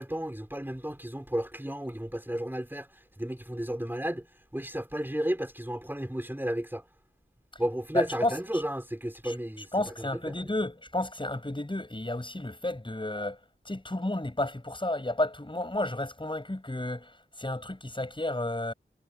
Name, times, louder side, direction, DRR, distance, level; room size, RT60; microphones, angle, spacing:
voice 1, 0.0-4.3 4.5-6.8 7.6-10.4, equal, 10° right, 4.4 m, -33 dB
voice 2, 7.9-8.6 9.2-9.3 9.7-13.4 13.6-18.7, left 1 dB, 25° left, 6.7 m, -32 dB
wide cardioid pair, 70°, 19 cm